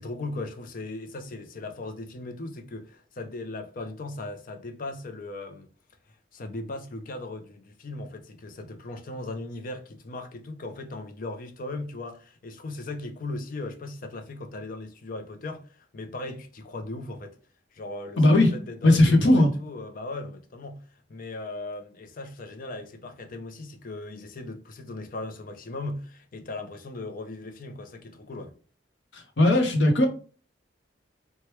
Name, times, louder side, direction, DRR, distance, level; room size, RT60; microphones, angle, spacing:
voice 1, 0.0-5.7 6.3-15.6 15.9-17.4 17.7-20.8 21.1-28.5, left 2 dB, 50° left, 0.5 m, -38 dB
voice 2, 18.2-18.5 18.8-19.5 29.1-30.1, left 1 dB, 85° left, 0.7 m, -18 dB
3.1 x 2.2 x 2.9 m
head